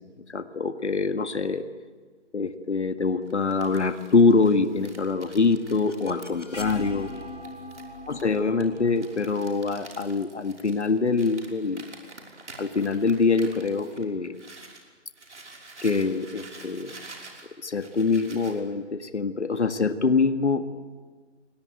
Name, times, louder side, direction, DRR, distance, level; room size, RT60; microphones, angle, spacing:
voice 1, 0.3-1.7 2.3-7.1 8.1-11.9 12.6-14.3 15.8-16.9 17.6-20.6, left 4 dB, 70° left, 9 dB, 1.9 m, -24 dB
Crumpling crinkling, 3.2-14.8 15.1-18.6, right 3 dB, 75° right, 5.7 m, -48 dB
sound 1, 5.1-11.0, left 1 dB, 90° left, 3.7 m, -42 dB
28.5 x 21.0 x 9.2 m, 1.4 s
figure-of-eight pair, 165°, 36 cm